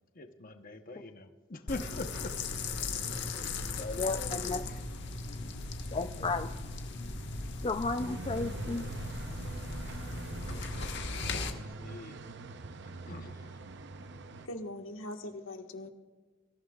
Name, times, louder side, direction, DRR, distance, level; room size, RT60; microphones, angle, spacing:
voice 1, 0.1-2.3 3.0-4.8 10.4-12.2 12.8-13.6, left 2 dB, 45° left, 6 dB, 1.0 m, -44 dB
sound 1, 1.7-11.5, left 3 dB, 60° left, 1.4 m, -38 dB
voice 2, 4.0-4.6 5.9-6.5 7.6-8.8, left 3 dB, 30° left, 8 dB, 0.4 m, -33 dB
sound 2, 8.0-14.5, right 3 dB, 60° right, 0.7 m, -43 dB
voice 3, 14.4-15.9, left 1 dB, 80° left, 4 dB, 1.5 m, -41 dB
24.5 x 15.0 x 2.4 m, 1.4 s
head